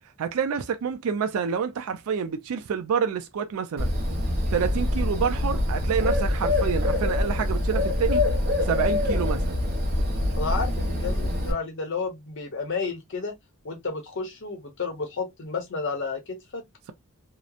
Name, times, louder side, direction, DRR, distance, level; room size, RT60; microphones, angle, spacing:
voice 1, 0.2-3.9 4.5-8.3 8.6-9.6, right 6 dB, 75° right, 0.4 m, -28 dB
Bird, 3.8-11.5, left 1 dB, 45° right, 0.8 m, -25 dB
voice 2, 10.4-13.3 13.6-16.6, left 4 dB, 60° left, 0.8 m, -31 dB
2.8 x 2.0 x 2.3 m
head